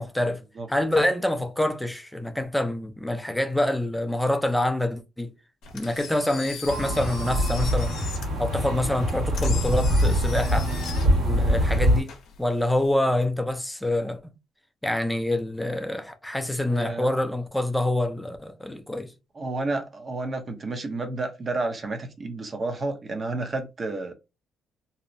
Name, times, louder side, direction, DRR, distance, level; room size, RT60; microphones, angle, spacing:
voice 1, 0.0-0.4 0.7-5.3 5.7-8.0 8.4-10.7 11.0-12.1 12.4-14.2 14.8-19.1, left 1 dB, 5° left, 0.4 m, -26 dB
Engine, 5.6-12.9, left 6 dB, 80° left, 0.6 m, -41 dB
sound 1, 6.7-12.0, equal, 80° right, 1.4 m, -23 dB
voice 2, 16.7-17.1 19.4-24.1, right 2 dB, 40° right, 0.6 m, -31 dB
2.7 x 2.0 x 2.5 m
cardioid pair, 90°, 0 cm